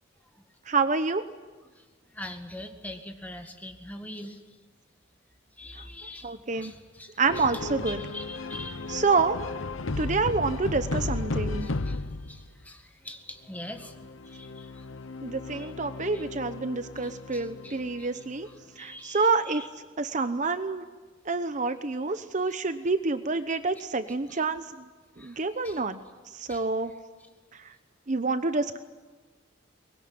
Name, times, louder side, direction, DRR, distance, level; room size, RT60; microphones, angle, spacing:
voice 1, 0.7-1.3 5.7-6.7 7.2-8.0 8.9-9.4 10.0-11.7 15.2-18.5 18.8-19.6 20.0-20.9 21.3-24.8 25.2-26.0 26.3-26.9 27.5-27.7 28.1-28.8, right 4 dB, 40° right, 10 dB, 0.8 m, -28 dB
voice 2, 2.1-4.4 5.6-7.5 7.9-9.0 11.6-14.0 14.2-14.9 15.6-15.7 16.1-16.2 17.0-18.1 18.8-19.7 24.3-24.4 25.2-25.8 26.5-26.6, left 1 dB, 10° left, 5 dB, 1.9 m, -43 dB
sound 1, 7.3-12.5 13.6-18.5, left 3 dB, 80° left, 0.9 m, -35 dB
23.5 x 20.5 x 9.6 m, 1.3 s
head